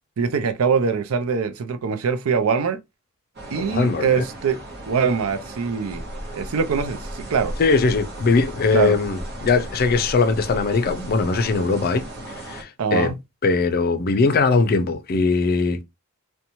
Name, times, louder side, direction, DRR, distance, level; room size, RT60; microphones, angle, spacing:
voice 1, 0.2-2.8 3.5-4.6 4.9-6.0 6.3-7.5 8.7-8.9 12.8-13.1, right 6 dB, 70° right, 0.4 m, -23 dB
sound 1, 3.3-12.6, right 1 dB, 50° right, 0.8 m, -35 dB
voice 2, 3.5-4.3 7.6-13.1 13.4-15.8, left 4 dB, 45° left, 0.4 m, -21 dB
2.9 x 2.2 x 2.6 m
head